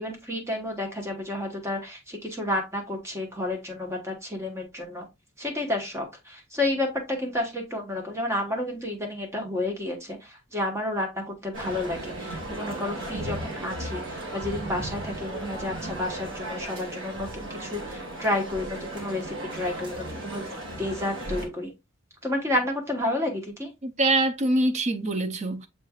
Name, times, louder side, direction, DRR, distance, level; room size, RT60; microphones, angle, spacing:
voice 1, 0.0-5.0 5.4-20.4 20.8-21.7 22.2-23.7, left 1 dB, 15° right, 1.0 m, -31 dB
Male speech man speaking, 11.5-21.5, right 1 dB, 65° right, 1.5 m, -36 dB
voice 2, 23.8-25.7, right 2 dB, 35° right, 0.5 m, -24 dB
6.7 x 3.2 x 2.3 m
head